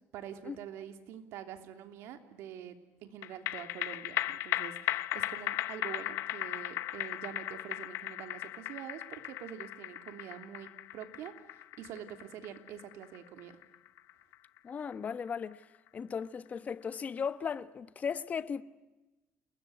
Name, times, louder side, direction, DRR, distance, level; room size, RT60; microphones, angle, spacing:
voice 1, 0.1-13.6, right 9 dB, 75° right, 3.2 m, -46 dB
sound 1, 3.2-15.9 16.2-16.3, left 15 dB, 75° left, 1.1 m, -37 dB
voice 2, 14.6-15.6 15.9-18.6, left 6 dB, 35° left, 1.2 m, -36 dB
29.0 x 21.0 x 9.6 m
cardioid pair, 120°, 5 cm